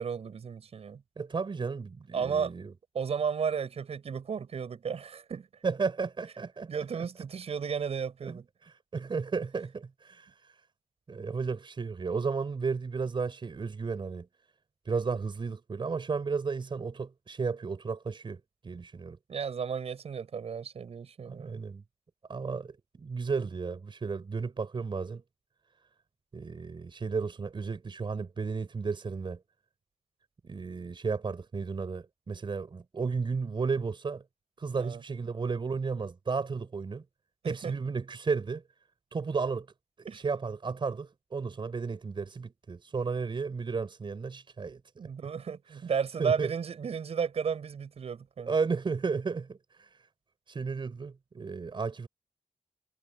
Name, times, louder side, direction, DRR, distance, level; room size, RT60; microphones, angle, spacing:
voice 1, 0.0-1.0 2.1-2.5 2.9-5.5 6.7-8.5 19.3-21.6 34.7-35.0 37.4-37.7 40.1-40.2 45.0-48.5, right 6 dB, 75° right, 7.0 m, -33 dB
voice 2, 1.2-2.7 5.6-6.7 8.2-10.3 11.1-14.3 14.9-19.2 21.3-21.8 22.3-25.2 26.3-29.4 30.4-34.2 34.6-37.0 37.5-38.6 39.1-39.7 40.0-44.8 46.2-46.5 48.5-49.9 50.5-52.1, right 5 dB, 50° right, 5.2 m, -33 dB
wide cardioid pair, 115°, 11 cm